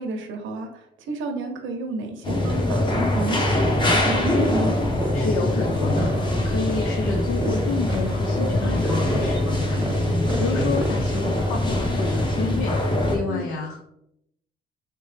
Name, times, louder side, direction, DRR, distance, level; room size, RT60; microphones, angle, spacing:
voice 1, 0.0-4.7 13.3-13.5, right 2 dB, 75° right, 4 dB, 0.7 m, -31 dB
sound 1, 2.2-13.2, left 1 dB, 25° left, 0.8 m, -23 dB
sound 2, 4.1-11.7, right 1 dB, 15° right, 0.4 m, -35 dB
voice 2, 4.9-13.8, left 4 dB, 90° left, 2 dB, 0.6 m, -30 dB
3.3 x 2.9 x 3.2 m, 0.78 s
cardioid pair, 90°, 20 cm